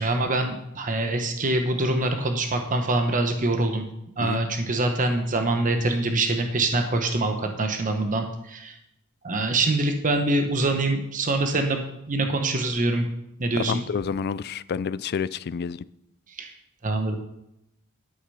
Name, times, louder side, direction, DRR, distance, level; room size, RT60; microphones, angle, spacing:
voice 1, 0.0-3.9 4.2-8.8 9.2-13.0 13.4-13.8 16.4-16.5 16.8-17.2, right 2 dB, 40° right, 5 dB, 0.9 m, -24 dB
voice 2, 13.7-15.8, left 6 dB, 50° left, 17 dB, 0.3 m, -29 dB
11.5 x 6.6 x 5.5 m, 0.82 s
head